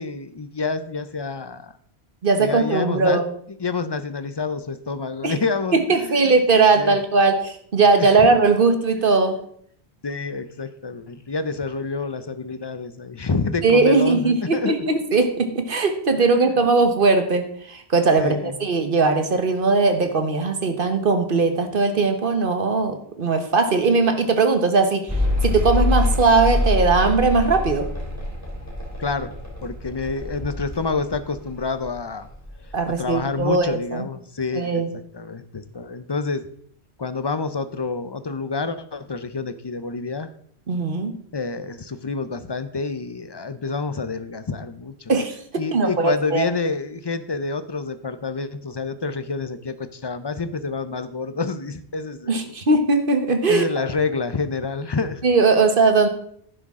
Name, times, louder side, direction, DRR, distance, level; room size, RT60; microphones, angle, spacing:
voice 1, 0.0-1.7 2.4-3.2 3.6-6.3 6.8-7.0 8.0-8.3 10.0-14.9 16.4-16.5 18.2-18.6 29.0-29.3 29.6-32.3 32.9-36.5 37.0-40.3 41.3-45.1 45.6-52.6 53.5-55.2, left 4 dB, 30° left, 12 dB, 0.5 m, -28 dB
voice 2, 2.2-3.2 5.2-5.3 5.7-9.4 13.6-25.1 25.4-27.9 32.7-34.1 34.5-34.9 40.7-41.1 45.1-45.4 45.7-46.4 52.3-53.6 55.2-56.1, right 3 dB, 55° right, 7 dB, 1.4 m, -19 dB
Mechanical fan, 25.1-32.0 32.2-33.0, left 2 dB, 15° left, 3.2 m, -25 dB
11.5 x 10.0 x 3.7 m, 0.64 s
omnidirectional pair, 1.1 m